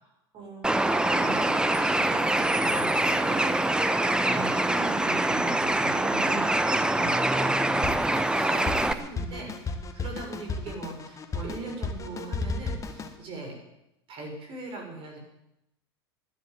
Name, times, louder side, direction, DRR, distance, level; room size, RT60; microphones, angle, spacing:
voice 1, 0.0-13.6 14.1-15.2, right 3 dB, 40° right, 1 dB, 6.4 m, -40 dB
Bird, 0.6-8.9, right 1 dB, 5° right, 1.0 m, -24 dB
Drum kit, 7.8-13.2, left 3 dB, 25° left, 1.8 m, -34 dB
12.0 x 11.0 x 9.4 m, 0.85 s
hypercardioid pair, 85°, 13 cm